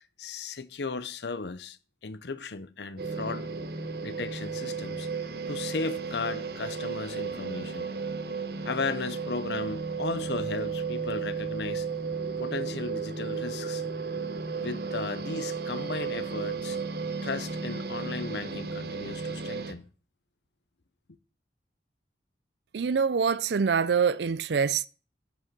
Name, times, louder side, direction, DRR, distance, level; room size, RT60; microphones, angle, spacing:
voice 1, 0.0-3.5 4.0-5.1 5.5-7.9 8.6-11.9 12.4-13.8 14.6-16.8 17.2-19.9, left 4 dB, 75° left, 0.7 m, -35 dB
sound 1, 3.0-19.7, right 5 dB, 60° right, 1.1 m, -34 dB
voice 2, 22.7-24.9, right 6 dB, 75° right, 0.5 m, -25 dB
11.0 x 6.1 x 7.3 m
head